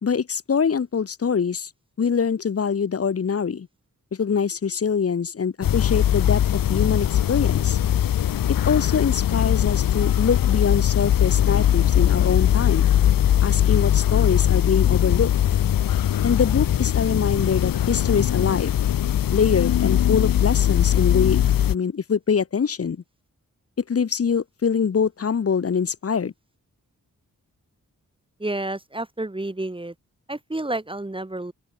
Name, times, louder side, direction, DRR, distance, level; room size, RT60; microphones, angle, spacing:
voice 1, 0.0-1.7 2.0-3.7 4.1-7.8 8.7-12.9 13.4-15.3 16.2-18.8 19.3-23.0 23.9-26.3, left 6 dB, 45° left, 0.8 m, -24 dB
sound 1, 5.6-21.8, left 11 dB, 85° left, 0.6 m, -20 dB
voice 2, 28.4-29.9 30.3-31.5, right 2 dB, 15° right, 2.7 m, -30 dB
open air
wide cardioid pair, 120°, 33 cm